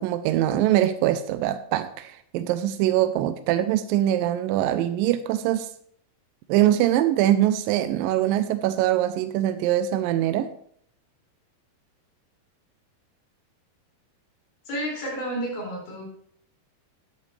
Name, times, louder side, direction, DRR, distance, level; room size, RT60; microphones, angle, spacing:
voice 1, 0.0-5.7 6.5-10.5, right 12 dB, 85° right, 11 dB, 2.0 m, -23 dB
voice 2, 14.7-16.0, right 1 dB, 65° left, -4 dB, 6.8 m, -31 dB
12.0 x 11.0 x 3.3 m, 0.63 s
omnidirectional pair, 4.7 m